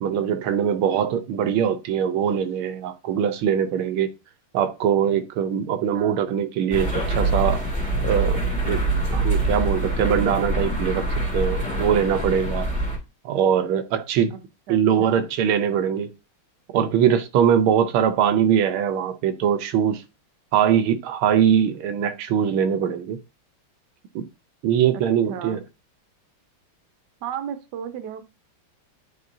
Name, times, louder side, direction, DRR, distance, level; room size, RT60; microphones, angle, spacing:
voice 1, 0.0-4.1 4.5-7.6 8.0-8.4 8.6-8.8 9.1-11.1 11.3-12.7 13.2-14.3 14.7-16.1 16.7-20.0 20.5-23.2 24.1-24.2 24.6-25.6, right 8 dB, 80° right, 1.5 m, -22 dB
sound 1, 6.7-13.0, right 2 dB, 5° left, 1.8 m, -24 dB
voice 2, 14.7-15.2 24.9-25.0 25.3-25.6 27.2-28.3, right 8 dB, 60° right, 1.3 m, -34 dB
9.4 x 4.4 x 2.7 m
omnidirectional pair, 2.3 m